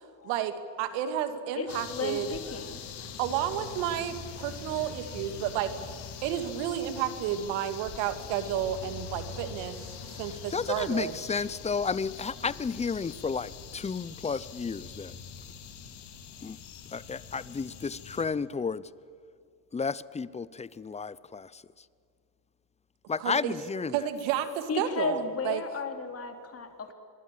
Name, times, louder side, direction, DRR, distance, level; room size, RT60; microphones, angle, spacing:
voice 1, 0.2-2.3 3.2-5.7 6.2-9.8 10.1-11.1 23.2-23.6 23.9-25.6, right 10 dB, 75° right, 10 dB, 2.3 m, -31 dB
voice 2, 1.5-3.1 4.7-4.9 24.7-26.9, left 4 dB, 30° left, 6 dB, 3.4 m, -35 dB
sound 1, 1.7-18.2, left 7 dB, 60° left, 3.7 m, -43 dB
voice 3, 10.5-15.1 16.4-16.6 16.9-18.8 19.7-21.5 23.1-23.9, left 5 dB, 15° left, 19 dB, 0.7 m, -32 dB
26.0 x 22.0 x 7.6 m, 2.3 s
supercardioid pair, 95°, 46 cm